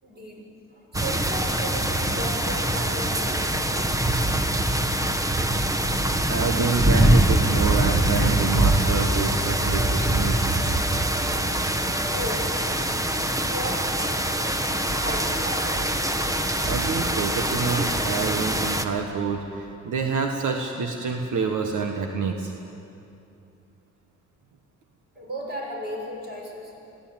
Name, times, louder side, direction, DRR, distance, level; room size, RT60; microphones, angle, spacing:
voice 1, 0.0-3.7 12.1-12.8 13.5-14.6 15.0-16.0 25.1-26.7, equal, 35° right, -2 dB, 6.5 m, -35 dB
sound 1, 0.9-18.8, right 1 dB, 10° right, 1.1 m, -23 dB
voice 2, 6.3-10.6 16.6-22.5, right 5 dB, 80° right, 3 dB, 1.5 m, -27 dB
sound 2, 7.4-14.7, equal, 10° left, 1.9 m, -42 dB
21.5 x 16.0 x 9.0 m, 2.7 s
cardioid pair, 105°, 30 cm